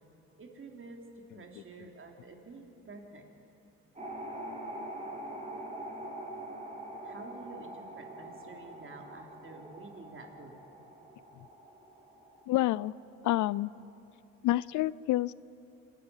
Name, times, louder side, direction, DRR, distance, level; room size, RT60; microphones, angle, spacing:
voice 1, 0.4-1.0 1.3-3.2 7.0-10.5 13.2-13.3, right 3 dB, 45° right, 2 dB, 3.4 m, -49 dB
sound 1, 3.9-13.4 13.7-13.8, right 1 dB, 25° right, 4.2 m, -44 dB
voice 2, 12.5-12.9 13.2-13.7 14.4-15.3, left 15 dB, 75° left, 22 dB, 0.5 m, -28 dB
26.5 x 13.5 x 9.8 m, 2.8 s
cardioid pair, 90°, 30 cm